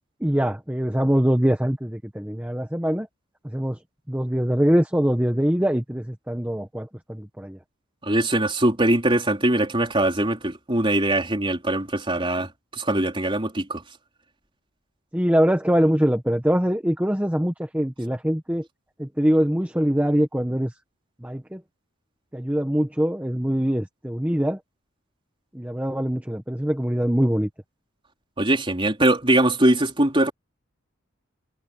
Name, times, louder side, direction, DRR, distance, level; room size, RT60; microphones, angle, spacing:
voice 1, 0.2-3.1 3.4-3.8 4.1-7.6 15.1-18.6 19.0-20.7 21.2-21.6 22.3-24.6 25.5-27.5, equal, 5° right, 1.1 m, -23 dB
voice 2, 8.0-13.8 28.4-30.3, right 1 dB, 25° right, 4.4 m, -22 dB
head